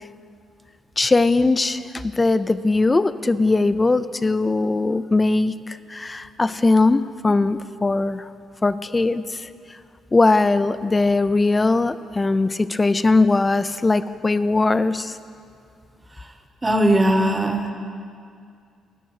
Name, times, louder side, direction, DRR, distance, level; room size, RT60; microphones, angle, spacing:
voice 1, 1.0-8.2 8.6-9.5 10.1-15.2, left 3 dB, 20° left, 14 dB, 0.4 m, -20 dB
voice 2, 16.6-17.7, right 1 dB, 20° right, 6 dB, 1.0 m, -19 dB
18.0 x 6.4 x 4.7 m, 2.3 s
cardioid pair, 90°, 0 cm